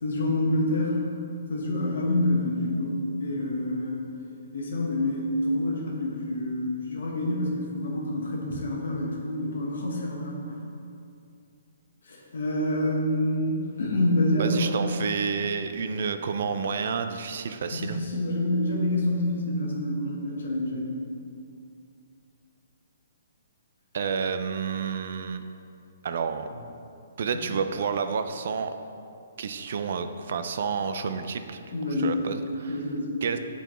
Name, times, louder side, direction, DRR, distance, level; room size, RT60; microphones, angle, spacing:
voice 1, 0.0-1.0 1.5-4.0 4.5-10.6 12.1-14.7 17.7-20.9 31.7-32.3 32.7-33.2, left 1 dB, 70° left, -3 dB, 1.0 m, -27 dB
voice 2, 14.4-18.0 23.9-25.4 26.0-26.5 27.2-28.7 29.4-32.8 33.2-33.4, right 6 dB, 45° right, 9 dB, 0.3 m, -30 dB
7.6 x 4.4 x 3.0 m, 2.5 s
hypercardioid pair, 180°, 0 cm